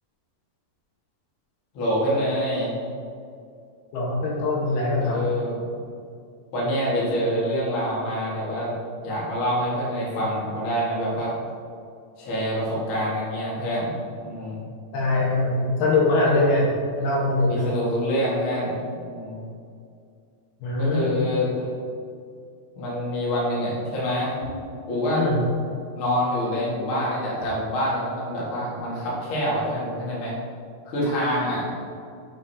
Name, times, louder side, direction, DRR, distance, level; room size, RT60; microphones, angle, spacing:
voice 1, 1.7-2.7 5.0-5.9 6.5-8.7 9.0-11.3 12.2-13.9 14.2-14.7 17.5-19.4 20.8-21.7 22.7-24.4 24.9-25.2 25.9-30.3 30.8-31.6, equal, 55° left, -7 dB, 1.4 m, -26 dB
voice 2, 3.9-5.2 14.9-16.7 16.9-17.6 20.6-21.2 25.1-25.4, left 2 dB, 75° left, -4 dB, 3.1 m, -22 dB
8.0 x 5.2 x 2.7 m, 2.4 s
omnidirectional pair, 4.8 m